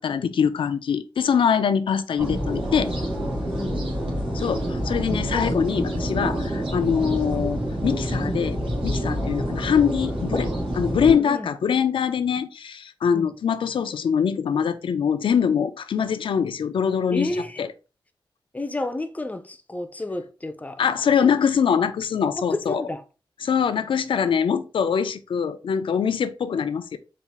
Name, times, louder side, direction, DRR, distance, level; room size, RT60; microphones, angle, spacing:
voice 1, 0.0-2.9 4.3-8.6 8.8-17.3 17.6-17.7 20.8-22.8 23.4-27.0, left 7 dB, 80° left, 0.4 m, -23 dB
sound 1, 2.2-11.2, equal, 90° right, 1.6 m, -27 dB
voice 2, 3.6-3.9 9.2-9.4 11.1-11.5 13.1-13.3 17.1-17.6 18.5-20.8 21.2-21.3 22.5-23.0, left 2 dB, 15° left, 0.4 m, -30 dB
4.2 x 2.4 x 3.5 m
wide cardioid pair, 145°, 9 cm